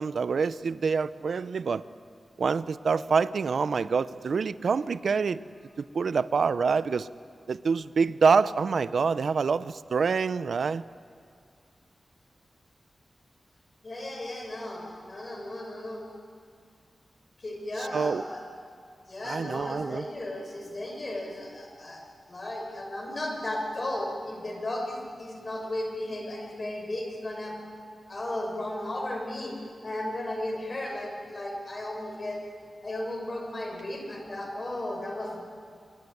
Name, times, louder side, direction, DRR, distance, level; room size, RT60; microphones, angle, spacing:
voice 1, 0.0-1.8 2.4-5.4 5.8-7.1 7.5-10.8 17.8-18.2 19.2-20.0, right 5 dB, 75° right, 16 dB, 0.6 m, -26 dB
voice 2, 13.8-16.0 17.4-18.4 19.0-22.0 22.3-27.6 28.1-29.5 29.8-32.4 32.8-35.4, left 1 dB, 35° left, 1 dB, 6.1 m, -35 dB
26.0 x 24.0 x 9.4 m, 2.3 s
wide cardioid pair, 125°, 0 cm